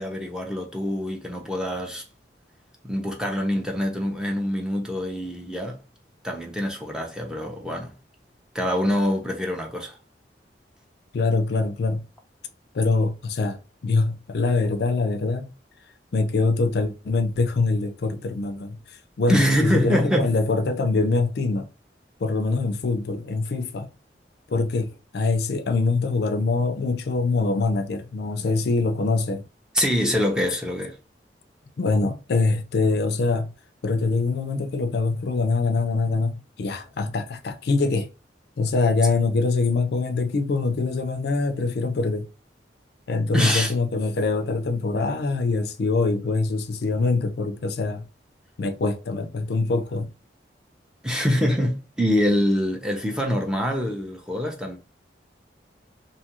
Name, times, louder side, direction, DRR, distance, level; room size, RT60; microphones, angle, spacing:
voice 1, 0.0-2.0 2.8-5.8 6.2-7.9 8.5-10.0 19.3-20.3 29.7-31.0 43.3-43.7 51.0-54.8, equal, 5° right, 0.5 m, -24 dB
voice 2, 11.1-12.0 12.7-13.6 13.8-15.5 16.1-21.7 22.2-23.9 24.5-29.4 31.8-33.5 33.8-38.1 38.6-42.3 43.1-48.0 48.6-50.1, left 3 dB, 65° left, 0.4 m, -24 dB
2.7 x 2.3 x 2.9 m
head